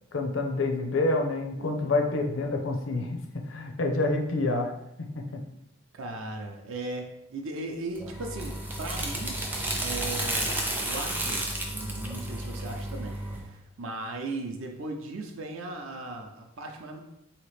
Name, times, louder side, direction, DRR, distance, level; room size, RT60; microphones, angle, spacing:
voice 1, 0.1-3.2 3.5-4.7 5.0-5.4, left 2 dB, 70° left, 3 dB, 0.6 m, -27 dB
voice 2, 1.6-2.0 5.9-9.4 9.8-17.0, right 2 dB, 75° right, 3 dB, 0.5 m, -38 dB
sound 1, 8.0-13.4, right 1 dB, 10° right, 0.4 m, -32 dB
4.0 x 2.9 x 3.2 m, 0.82 s
head